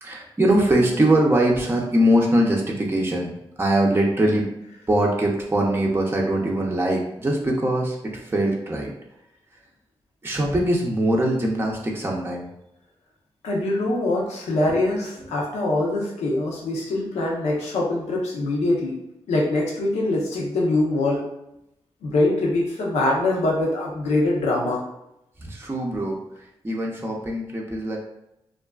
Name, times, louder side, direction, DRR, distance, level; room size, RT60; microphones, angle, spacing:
voice 1, 0.0-3.3 3.6-4.5 4.9-8.0 8.2-8.9 10.2-12.5 25.4-26.2 26.6-28.0, right 1 dB, 20° right, -2 dB, 0.6 m, -22 dB
voice 2, 13.4-19.0 19.3-21.2 22.0-24.8, left 2 dB, 85° left, -3 dB, 0.7 m, -23 dB
2.4 x 2.3 x 2.2 m, 0.82 s
supercardioid pair, 45°, 11 cm